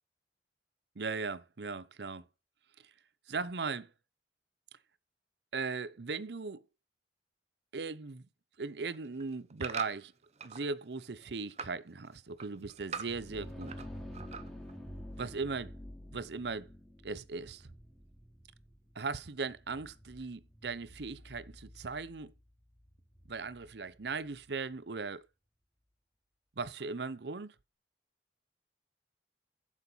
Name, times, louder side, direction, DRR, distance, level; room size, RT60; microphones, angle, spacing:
voice 1, 1.0-2.3 3.3-3.9 5.5-6.6 7.7-8.3 8.6-10.1 10.4-13.7 15.2-15.7 16.1-16.7 17.0-17.7 19.0-22.3 23.3-25.3 26.6-27.5, right 4 dB, 70° right, 0.7 m, -38 dB
sound 1, 8.8-10.7 11.0-11.8 12.1-13.9 14.1-14.7 15.2-15.3, right 6 dB, 40° right, 0.9 m, -43 dB
sound 2, 12.9-24.5, equal, ahead, 2.6 m, -49 dB
8.1 x 7.4 x 5.6 m
head